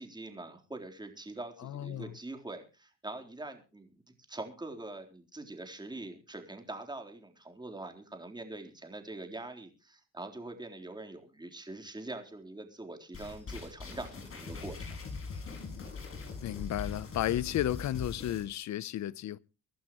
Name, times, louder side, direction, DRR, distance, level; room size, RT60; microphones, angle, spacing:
voice 1, 0.0-3.9 4.3-15.0, right 2 dB, 15° right, 3.9 m, -44 dB
voice 2, 1.6-2.1 16.4-19.4, left 12 dB, 65° left, 0.8 m, -33 dB
sound 1, 13.1-18.4, left 4 dB, 45° left, 5.9 m, -41 dB
24.0 x 12.0 x 3.1 m
cardioid pair, 90°, 30 cm